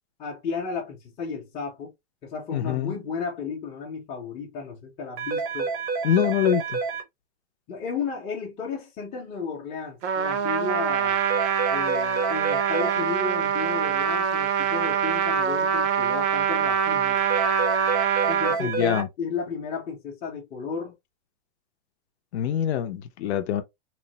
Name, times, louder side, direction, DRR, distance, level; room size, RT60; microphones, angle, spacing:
voice 1, 0.2-1.9 2.2-5.7 7.7-11.2 11.7-17.2 18.3-21.0, left 5 dB, 15° left, 0.6 m, -33 dB
voice 2, 2.5-2.9 6.0-6.8 18.6-19.1 22.3-23.6, left 10 dB, 65° left, 0.6 m, -24 dB
sound 1, 5.2-7.0 11.2-13.0 17.2-19.0, right 5 dB, 25° right, 0.6 m, -29 dB
Trumpet, 10.0-18.6, right 7 dB, 75° right, 0.7 m, -24 dB
3.1 x 2.0 x 2.8 m
supercardioid pair, 155°, 35 cm